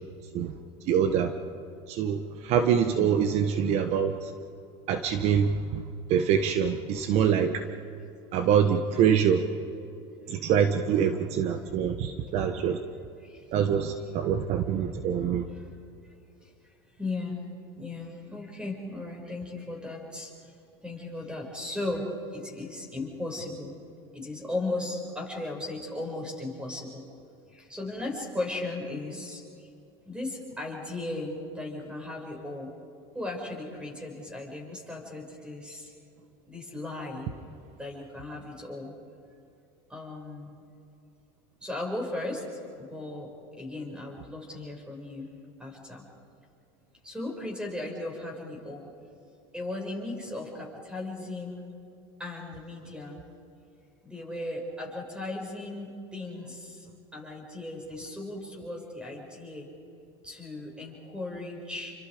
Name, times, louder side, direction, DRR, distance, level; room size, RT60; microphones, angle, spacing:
voice 1, 0.9-1.3 1.9-4.3 4.9-5.8 6.1-7.6 8.3-9.4 10.3-12.8 13.5-15.4, right 8 dB, 50° right, 8 dB, 1.3 m, -25 dB
voice 2, 16.4-17.4 17.7-20.5 20.8-23.8 24.1-27.1 27.5-29.7 30.0-32.7 33.1-35.9 36.5-37.3 37.7-38.9 39.9-40.5 41.6-42.4 42.8-45.3 45.6-46.1 47.0-49.0 49.5-51.7 52.2-53.2 54.0-56.9 57.1-59.7 60.2-61.9, left 2 dB, 5° right, 1 dB, 6.5 m, -37 dB
29.5 x 25.0 x 5.1 m, 2.7 s
supercardioid pair, 125°, 13 cm